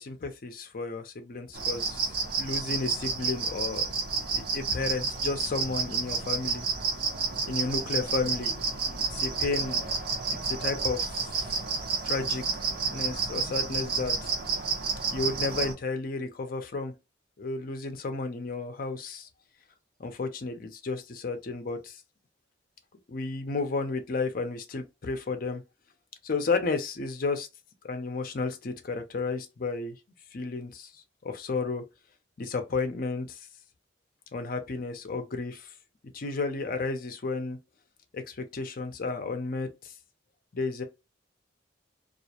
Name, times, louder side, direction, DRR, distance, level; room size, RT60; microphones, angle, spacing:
voice 1, 0.0-2.1 2.3-6.7 7.4-9.8 10.3-11.5 12.0-12.4 12.9-14.3 15.1-16.9 17.4-19.3 20.0-22.0 23.1-25.6 26.2-27.5 27.8-30.0 30.3-30.9 31.2-31.8 32.4-33.4 34.3-35.7 36.1-37.6 38.1-39.9 40.5-40.8, left 3 dB, 50° left, 0.5 m, -32 dB
sound 1, 1.5-15.7, right 5 dB, 50° right, 0.6 m, -30 dB
2.4 x 2.1 x 2.8 m
head